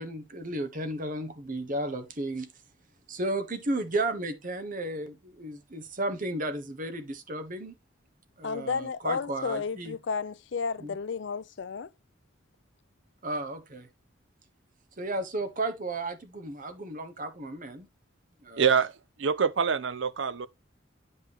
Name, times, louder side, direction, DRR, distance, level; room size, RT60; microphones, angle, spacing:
voice 1, 0.0-2.5 3.1-7.7 8.4-9.9 10.8-10.9 13.2-13.9 15.0-17.9 18.4-18.8, right 2 dB, 45° right, 1.2 m, -33 dB
voice 2, 8.4-11.9, left 5 dB, 60° left, 0.5 m, -32 dB
voice 3, 18.6-20.5, right 6 dB, 65° right, 0.6 m, -26 dB
9.0 x 5.5 x 3.5 m
head